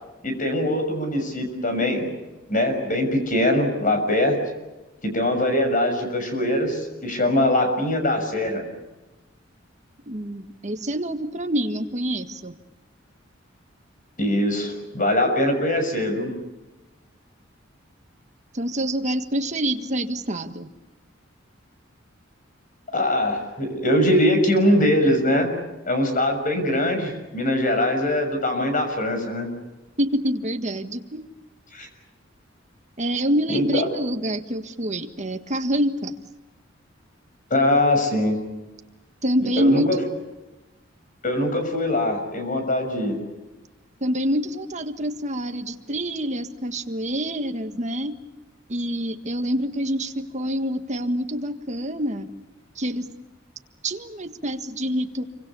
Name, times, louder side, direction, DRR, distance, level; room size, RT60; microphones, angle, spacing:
voice 1, 0.2-2.1 2.5-4.4 5.0-8.6 14.2-16.3 22.9-25.5 25.8-29.5 31.7-31.9 33.5-33.8 37.5-38.4 39.4-40.0 41.2-43.2, left 1 dB, 45° left, 6 dB, 6.5 m, -22 dB
voice 2, 10.1-12.6 18.5-20.7 30.0-31.3 33.0-36.1 39.2-40.1 44.0-48.1 48.7-52.3 52.8-53.1 53.8-55.2, equal, 40° right, 7 dB, 1.6 m, -26 dB
28.0 x 24.5 x 7.0 m, 1.1 s
head